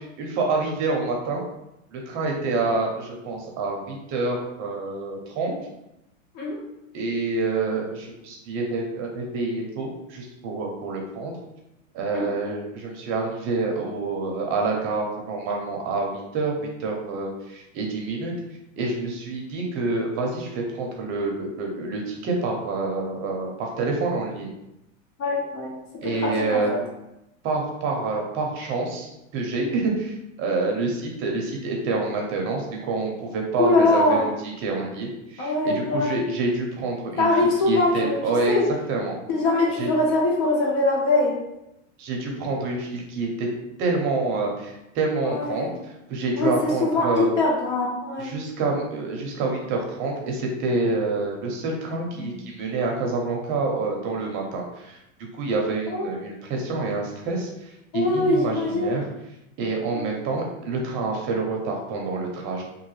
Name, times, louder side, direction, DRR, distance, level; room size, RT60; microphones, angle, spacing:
voice 1, 0.2-1.4 1.9-5.5 6.9-11.3 11.9-18.3 18.8-24.5 26.0-26.7 27.4-34.3 34.6-37.3 37.7-38.6 38.9-39.1 39.8-39.9 42.0-43.5 43.8-45.7 46.1-47.3 48.2-55.0 55.4-57.5 57.9-59.0 59.6-62.6, right 3 dB, 30° right, 0 dB, 0.6 m, -27 dB
voice 2, 25.2-25.7 26.0-26.8 33.6-34.2 35.4-36.2 37.2-38.2 38.5-38.6 39.3-41.3 45.2-45.7 46.4-48.3 52.1-52.4 55.9-56.1 57.9-59.0 59.9-60.1, left 2 dB, 75° left, -2 dB, 1.2 m, -23 dB
3.0 x 2.2 x 3.1 m, 0.88 s
supercardioid pair, 140°, 39 cm